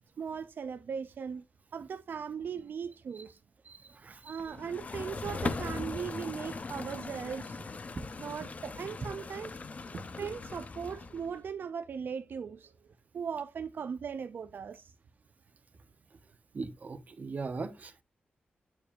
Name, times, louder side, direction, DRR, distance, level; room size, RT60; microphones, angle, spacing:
voice 1, 0.2-1.4 1.7-3.4 4.2-7.6 8.2-9.6 10.2-12.7 13.1-14.9, right 6 dB, 65° right, 0.4 m, -38 dB
voice 2, 3.6-4.5 7.9-8.1 9.9-10.0 16.5-18.0, right 4 dB, 45° right, 0.9 m, -40 dB
sound 1, 4.4-11.4, left 4 dB, 40° left, 0.6 m, -40 dB
8.6 x 4.6 x 2.5 m
wide cardioid pair, 105°, 4 cm